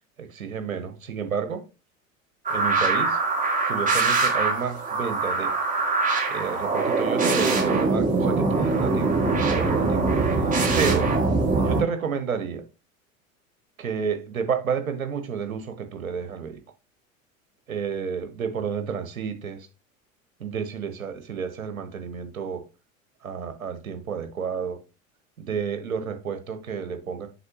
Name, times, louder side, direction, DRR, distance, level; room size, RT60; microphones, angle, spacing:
voice 1, 0.2-1.6 2.5-3.2 3.7-5.6 6.3-9.2 9.5-10.4 10.8-11.1 11.6-12.6 13.8-16.6 17.7-19.7 20.4-22.7 23.2-24.8 25.4-27.3, right 6 dB, 75° right, 1.3 m, -30 dB
sound 1, 2.5-11.8, right 3 dB, 20° right, 2.4 m, -23 dB
7.9 x 5.9 x 2.9 m
figure-of-eight pair, 75°, 41 cm